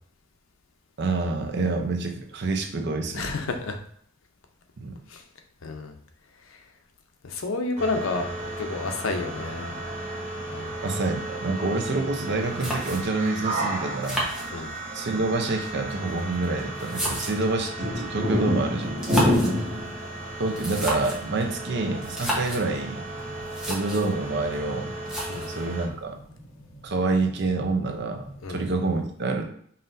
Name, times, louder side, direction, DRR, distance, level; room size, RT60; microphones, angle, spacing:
voice 1, 1.0-3.3 4.8-5.0 10.8-14.3 14.9-18.9 20.4-23.0 23.7-24.9 25.5-26.2 26.8-29.4, right 3 dB, 55° right, 4 dB, 0.6 m, -27 dB
voice 2, 3.1-3.8 5.1-5.2 5.6-5.9 6.5-6.6 7.2-9.7 10.5-10.7 14.5-14.7 25.3-25.5 28.4-28.6, left 3 dB, 85° left, 5 dB, 0.6 m, -30 dB
Machine Hum Dirty, 7.8-25.9, equal, 35° right, 1.0 m, -31 dB
sound 1, 12.6-13.3 14.0-15.0 15.9-17.6 18.8-19.6 20.5-21.3 22.0-22.7 23.2-23.3 23.5-24.1 25.1-25.6, equal, 5° right, 0.9 m, -31 dB
sound 2, 14.2-28.5, right 1 dB, 25° left, 0.9 m, -49 dB
5.5 x 2.6 x 2.6 m, 0.63 s
head